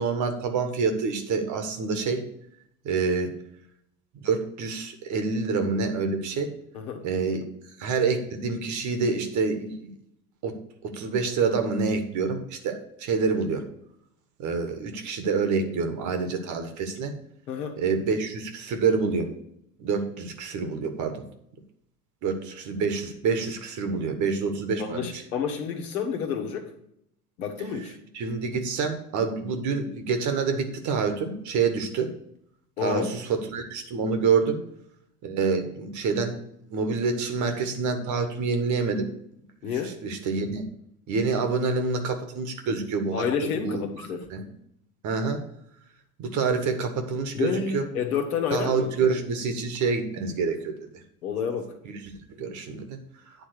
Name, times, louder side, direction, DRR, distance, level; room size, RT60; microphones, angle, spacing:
voice 1, 0.0-2.2 2.8-3.3 4.2-6.5 7.0-7.4 7.8-9.9 10.4-10.6 10.8-13.7 14.4-17.1 17.8-19.3 19.8-21.2 22.2-25.2 28.1-32.1 32.8-34.6 35.2-36.4 36.7-39.1 40.0-40.6 41.1-43.2 43.5-43.8 44.3-44.5 45.0-45.4 46.2-47.9 48.5-50.7 51.8-52.0 52.3-53.0, right 4 dB, 40° right, 6 dB, 1.3 m, -27 dB
voice 2, 17.5-17.8 24.8-26.7 27.4-28.0 32.8-33.1 39.6-40.0 43.1-44.2 47.3-48.9 51.2-51.7, left 6 dB, 70° left, 3 dB, 1.5 m, -29 dB
9.2 x 3.6 x 6.4 m, 0.75 s
hypercardioid pair, 85°, 46 cm